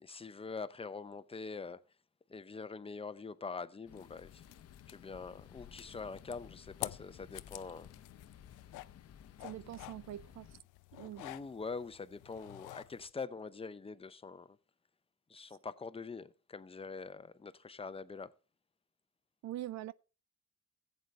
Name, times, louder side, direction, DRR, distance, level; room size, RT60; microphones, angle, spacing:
voice 1, 0.0-1.8 2.3-4.4 4.9-7.9 11.0-14.6 15.3-18.3, left 4 dB, 20° left, 0.7 m, -44 dB
sound 1, 3.9-10.6, left 9 dB, 55° left, 0.8 m, -56 dB
sound 2, 4.0-13.1, left 17 dB, 90° left, 0.5 m, -50 dB
voice 2, 9.4-10.6 11.0-11.2 19.4-19.9, right 13 dB, 65° right, 0.4 m, -43 dB
15.5 x 8.1 x 3.3 m
cardioid pair, 90°, 30 cm